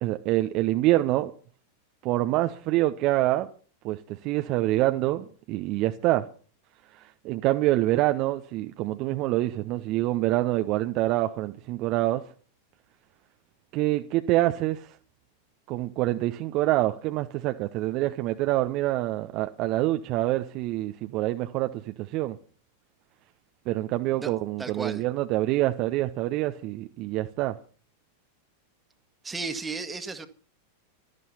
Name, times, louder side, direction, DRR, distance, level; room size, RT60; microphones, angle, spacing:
voice 1, 0.0-1.3 2.0-3.5 3.8-6.2 6.9-12.2 13.7-14.9 15.7-22.4 23.7-27.6, right 16 dB, 40° right, 0.8 m, -26 dB
voice 2, 24.6-25.0 29.2-30.3, right 4 dB, 15° right, 1.7 m, -34 dB
16.0 x 12.5 x 4.3 m
figure-of-eight pair, 90°, 0 cm